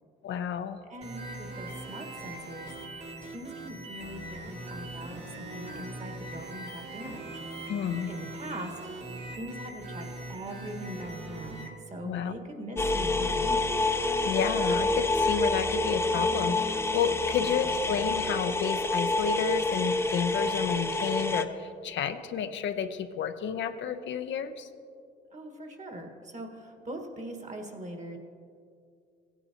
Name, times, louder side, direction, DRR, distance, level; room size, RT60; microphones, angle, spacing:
voice 1, 0.2-0.8 7.7-8.1 12.1-12.3 14.2-24.7, left 7 dB, 70° left, 9 dB, 0.6 m, -31 dB
voice 2, 0.9-2.7 3.2-7.4 8.1-8.8 9.4-13.9 17.4-17.6 25.3-28.2, right 1 dB, 35° right, 4 dB, 1.5 m, -41 dB
sound 1, 1.0-11.7, right 2 dB, 60° right, 2.4 m, -41 dB
sound 2, 12.8-21.4, left 2 dB, 10° left, 0.6 m, -27 dB
16.0 x 9.8 x 2.9 m, 2.3 s
cardioid pair, 90°, 20 cm